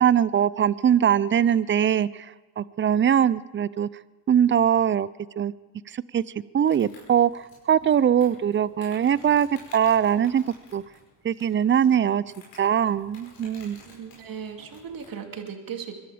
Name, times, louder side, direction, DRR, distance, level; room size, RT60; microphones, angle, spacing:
voice 1, 0.0-3.9 4.3-5.1 5.4-5.5 5.9-6.2 6.5-9.5 9.7-10.4 10.7-10.8 11.2-12.2 12.6-13.8, right 9 dB, 25° right, 20 dB, 0.5 m, -21 dB
Insect, 6.7-15.2, left 2 dB, 85° left, 5.5 m, -52 dB
voice 2, 13.8-16.0, right 7 dB, 50° right, 4 dB, 2.6 m, -37 dB
22.5 x 12.5 x 5.0 m, 1.2 s
hypercardioid pair, 65°, 44 cm